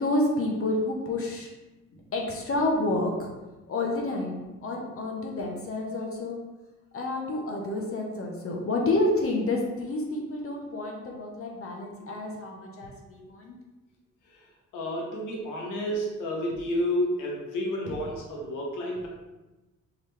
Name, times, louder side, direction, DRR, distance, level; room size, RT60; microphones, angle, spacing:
voice 1, 0.0-1.5 2.1-3.3 3.7-6.4 6.9-13.6, left 2 dB, 45° left, 0 dB, 1.0 m, -29 dB
voice 2, 14.7-19.1, equal, 90° left, -1 dB, 1.1 m, -30 dB
4.0 x 3.9 x 3.3 m, 1.1 s
cardioid pair, 90°, 30 cm